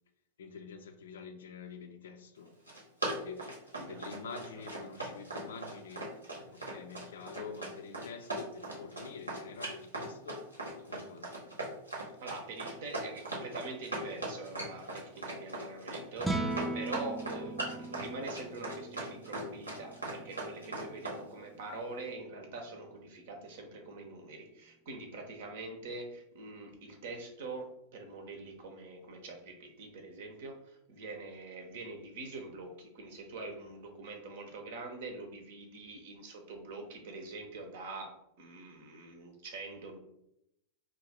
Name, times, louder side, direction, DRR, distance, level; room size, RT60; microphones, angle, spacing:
voice 1, 0.4-2.5 3.1-3.5 3.9-6.0 6.5-10.4 10.9-11.4, left 5 dB, 60° left, 7 dB, 0.4 m, -46 dB
Run, 2.5-21.2, right 2 dB, 85° right, 1.0 m, -39 dB
voice 2, 3.8-4.2 4.5-4.6 12.2-40.0, right 3 dB, 55° right, 3 dB, 0.8 m, -44 dB
sound 1, 16.2-22.5, right 2 dB, 5° right, 0.4 m, -40 dB
2.7 x 2.5 x 4.1 m, 0.80 s
figure-of-eight pair, 90°, 0 cm